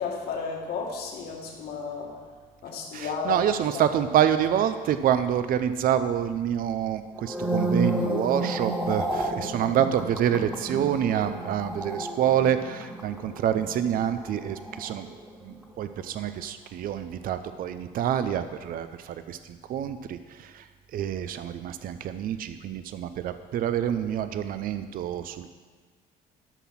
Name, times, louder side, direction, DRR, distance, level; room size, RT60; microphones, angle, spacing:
voice 1, 0.0-2.1 2.6-3.4 3.7-3.8, left 5 dB, 70° left, -1 dB, 2.1 m, -33 dB
voice 2, 2.9-15.1 15.4-19.4 19.7-20.6 20.9-25.5, right 9 dB, 55° right, 11 dB, 0.6 m, -27 dB
sound 1, 7.1-15.6 15.8-16.2, right 2 dB, 5° right, 1.3 m, -31 dB
12.0 x 6.1 x 5.8 m, 1.5 s
cardioid pair, 110°, 17 cm